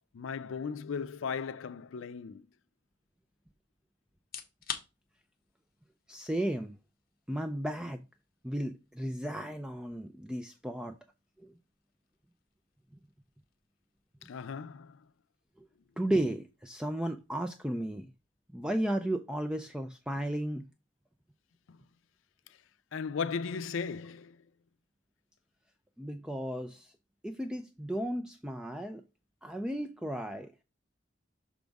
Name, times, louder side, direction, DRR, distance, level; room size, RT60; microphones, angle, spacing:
voice 1, 0.1-2.4 14.2-15.0 21.7-21.8 22.9-24.4, left 5 dB, 90° left, 0.4 m, -36 dB
sound 1, 4.2-19.0, left 8 dB, 50° left, 0.8 m, -52 dB
voice 2, 6.1-6.8 7.3-8.0 8.4-11.0 11.4-11.6 15.6-15.7 16.0-18.1 18.5-20.6 26.0-26.9 27.2-29.0 29.4-30.5, right 1 dB, 5° right, 0.4 m, -34 dB
6.1 x 5.1 x 3.5 m
head